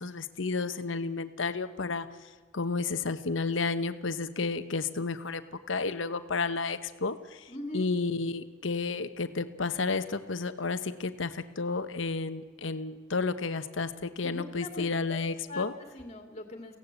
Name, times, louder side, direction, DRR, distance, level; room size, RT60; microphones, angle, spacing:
voice 1, 0.0-5.4 5.7-15.7, left 4 dB, 65° left, 11 dB, 1.0 m, -32 dB
voice 2, 7.5-7.8 14.2-15.2 15.5-16.8, left 1 dB, 30° left, 4 dB, 2.5 m, -41 dB
23.0 x 16.5 x 8.3 m, 1.4 s
head